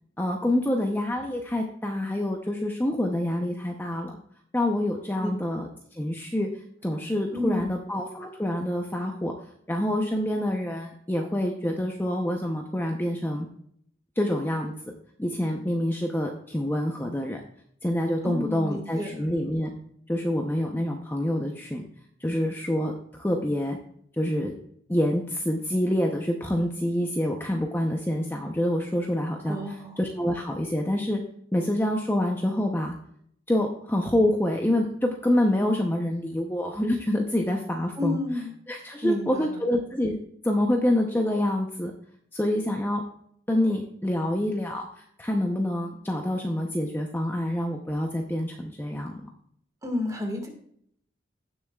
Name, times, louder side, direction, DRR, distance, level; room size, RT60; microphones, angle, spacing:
voice 1, 0.2-4.2 4.5-6.5 6.8-9.3 9.7-13.5 14.2-14.9 15.2-17.4 17.8-19.7 20.1-21.8 22.2-23.8 24.1-24.5 24.9-31.2 31.5-32.9 33.5-38.2 38.7-40.2 40.4-41.9 42.3-43.0 43.5-49.2, left 1 dB, 10° left, 2 dB, 0.7 m, -27 dB
voice 2, 7.3-7.7 18.2-19.3 29.5-30.0 38.0-38.5 39.0-39.6 49.8-50.5, left 2 dB, 20° right, 3 dB, 1.8 m, -30 dB
16.0 x 7.0 x 2.3 m, 0.68 s
head